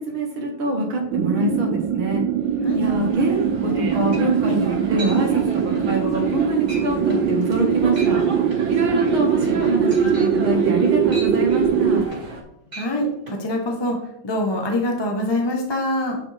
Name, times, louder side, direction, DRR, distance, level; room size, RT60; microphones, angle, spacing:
voice 1, 0.0-2.2 2.7-8.2 8.7-12.1, right 2 dB, 90° right, 0 dB, 2.7 m, -24 dB
sound 1, 1.1-12.1, right 7 dB, 75° right, 1.2 m, -21 dB
sound 2, 2.8-12.4, right 2 dB, 55° right, 2.1 m, -36 dB
sound 3, 3.7-3.8 4.1-4.5 5.0-5.2 5.6-5.9 6.3-6.4 6.7-6.8 7.1-7.3 7.8-8.2 8.5-12.4 12.7-12.9 13.3-13.4, equal, 20° right, 3.9 m, -36 dB
voice 2, 12.8-16.2, left 1 dB, 15° left, 1 dB, 1.0 m, -25 dB
9.9 x 6.2 x 3.5 m, 0.78 s
omnidirectional pair, 2.2 m